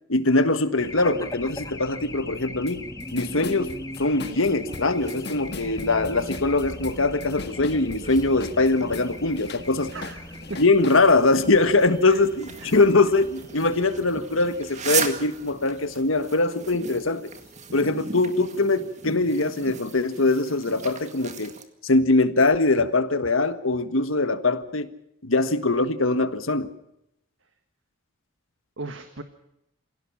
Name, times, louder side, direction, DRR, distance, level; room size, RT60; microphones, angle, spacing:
voice 1, 0.1-2.8 3.1-9.9 10.6-17.3 17.7-21.5 21.8-24.9 25.2-26.7, left 3 dB, 80° left, 1.6 m, -22 dB
Race car auto racing / Alarm, 0.8-17.7, left 1 dB, 20° left, 1.6 m, -40 dB
sound 1, 2.7-2.8 3.0-9.1 9.4-11.0, left 3 dB, 55° left, 1.6 m, -39 dB
sound 2, 4.2-21.6, right 6 dB, 35° right, 2.0 m, -38 dB
voice 2, 9.9-10.6 12.0-12.2 12.6-12.8 28.8-29.2, right 3 dB, 65° right, 1.7 m, -37 dB
27.0 x 17.0 x 5.9 m
head